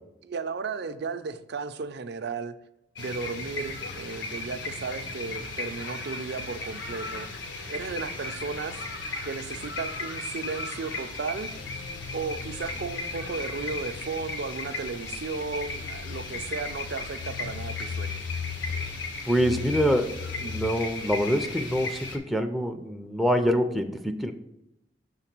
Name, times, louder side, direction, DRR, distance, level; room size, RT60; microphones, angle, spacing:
voice 1, 0.2-2.5 3.0-7.3 7.7-8.8 9.3-11.5 12.1-18.2, right 4 dB, 60° right, 11 dB, 0.5 m, -34 dB
sound 1, 2.9-22.2, left 2 dB, 85° left, 1.2 m, -36 dB
sound 2, 11.6-20.7, left 7 dB, 70° left, 0.3 m, -39 dB
voice 2, 19.3-20.1 20.4-24.3, equal, ahead, 4 dB, 0.4 m, -25 dB
6.5 x 3.9 x 6.0 m, 0.87 s
head